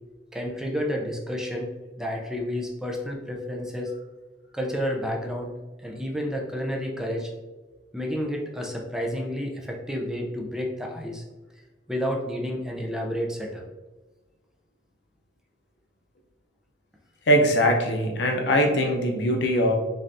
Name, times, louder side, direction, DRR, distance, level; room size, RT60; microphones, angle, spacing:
voice 1, 0.3-1.7 2.0-3.9 4.5-5.5 5.8-7.3 7.9-11.2 11.9-13.6, equal, 5° right, 0 dB, 0.5 m, -30 dB
voice 2, 17.3-19.8, equal, 65° left, 3 dB, 0.6 m, -21 dB
3.8 x 3.3 x 2.5 m, 1.2 s
head